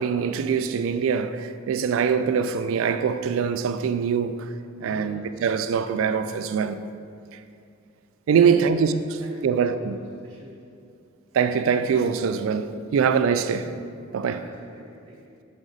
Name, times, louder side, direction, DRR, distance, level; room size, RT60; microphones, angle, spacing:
voice 1, 0.0-4.5 4.8-6.8 8.3-8.9 9.4-10.0 11.3-13.7 14.1-14.4, right 6 dB, 75° right, 0.3 m, -23 dB
voice 2, 4.8-5.3 8.3-8.8 9.2-10.0 10.2-10.6 14.2-15.2, equal, 20° right, 0.6 m, -43 dB
6.1 x 4.8 x 3.9 m
head